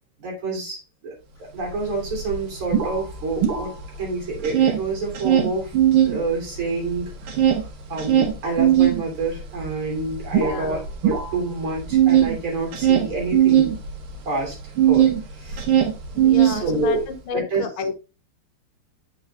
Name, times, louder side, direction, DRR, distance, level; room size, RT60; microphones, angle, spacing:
voice 1, 0.2-1.1 1.5-3.7 4.0-5.7 6.1-7.1 7.9-13.8 14.2-14.5 14.8-15.1 15.3-15.6 16.4-17.0 17.3-17.7, right 3 dB, 65° right, 3.5 m, -27 dB
sound 1, 1.7-4.0 4.3-6.2 6.6-15.2 15.5-17.0, right 10 dB, 80° right, 2.0 m, -19 dB
voice 2, 10.3-10.8 16.1-18.0, left 6 dB, 75° left, 1.6 m, -30 dB
7.7 x 4.7 x 3.2 m
omnidirectional pair, 2.4 m